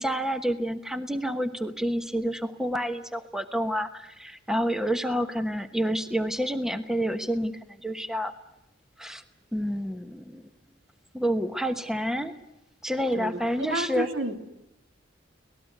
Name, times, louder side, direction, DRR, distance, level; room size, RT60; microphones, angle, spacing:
voice 1, 0.0-8.3 9.0-9.2 9.5-10.4 11.1-12.3 12.8-14.1, equal, 5° right, 9 dB, 1.1 m, -29 dB
voice 2, 13.7-14.4, right 2 dB, 80° right, 6 dB, 2.6 m, -30 dB
25.0 x 19.0 x 9.3 m, 0.91 s
head